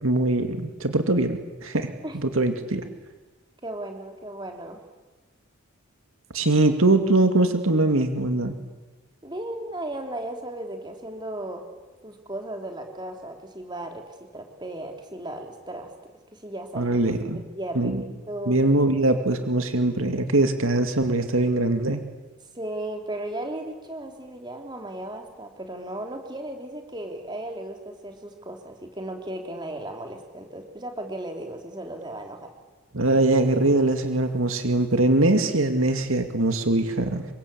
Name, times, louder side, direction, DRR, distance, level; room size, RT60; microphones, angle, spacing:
voice 1, 0.0-1.9 2.2-2.8 6.3-8.6 16.8-17.4 17.8-18.0 18.5-22.0 32.9-37.3, right 2 dB, 70° right, 7 dB, 2.4 m, -22 dB
voice 2, 3.6-4.8 9.2-11.6 12.0-14.0 14.3-16.9 17.3-18.6 22.5-32.5, right 1 dB, 20° right, 3 dB, 3.6 m, -36 dB
27.5 x 24.0 x 8.7 m, 1.2 s
head